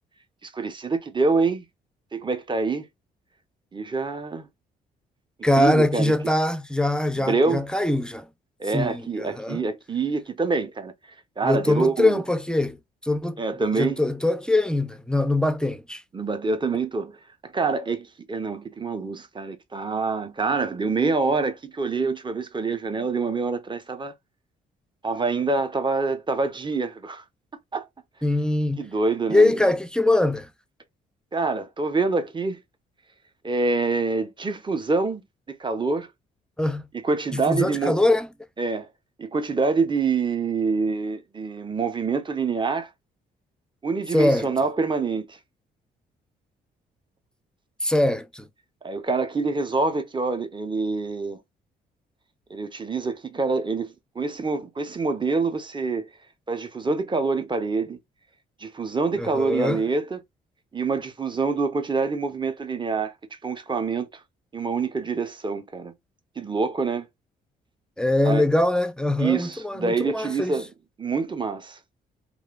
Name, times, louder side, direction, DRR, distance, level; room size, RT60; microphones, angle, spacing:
voice 1, 0.4-1.6 2.1-2.9 3.7-4.5 5.4-6.1 7.2-7.6 8.6-10.9 11.4-12.2 13.4-14.0 16.1-17.2 17.4-24.1 25.0-27.2 27.7-27.9 28.8-29.6 31.3-32.6 33.4-36.1 36.9-38.0 38.6-38.9 39.2-42.9 43.8-45.4 48.8-51.4 52.5-56.1 56.5-58.0 58.6-60.2 60.7-63.1 63.4-64.1 64.5-65.9 66.4-67.1 68.2-68.4 69.2-70.7 71.0-71.8, right 4 dB, 20° right, 0.8 m, -26 dB
voice 2, 5.4-8.3 8.7-9.6 11.4-12.8 13.0-13.4 13.7-16.0 28.2-28.8 29.3-30.5 36.6-36.8 37.3-38.3 44.1-44.5 47.8-48.5 59.2-59.8 68.0-70.6, left 2 dB, 5° left, 0.5 m, -22 dB
3.1 x 2.5 x 2.4 m
hypercardioid pair, 50°, 21 cm